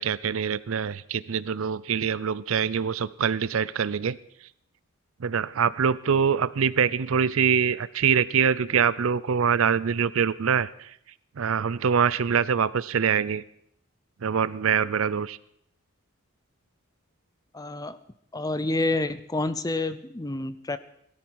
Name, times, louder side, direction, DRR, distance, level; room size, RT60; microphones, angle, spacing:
voice 1, 0.0-4.2 5.2-10.9 11.4-13.4 14.2-15.4, right 7 dB, 65° right, 18 dB, 0.5 m, -24 dB
voice 2, 17.5-18.0 18.3-20.8, left 2 dB, 15° left, 13 dB, 0.6 m, -28 dB
17.5 x 13.5 x 4.7 m, 0.70 s
head